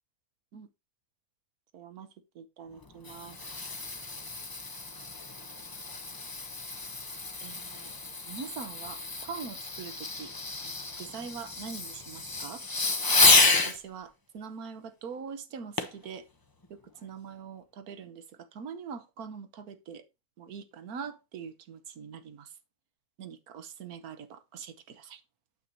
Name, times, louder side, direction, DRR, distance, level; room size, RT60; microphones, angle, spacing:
voice 1, 1.7-2.1 2.3-3.4 7.4-7.9 8.3-10.3 10.6-12.6 13.5-16.2 16.7-20.0 20.4-22.5 23.2-25.2, right 6 dB, 80° right, 1.5 m, -43 dB
Fireworks, 2.8-13.8 15.8-16.0 16.6-16.7, left 3 dB, 20° left, 0.6 m, -29 dB
9.1 x 7.8 x 2.7 m
omnidirectional pair, 1.6 m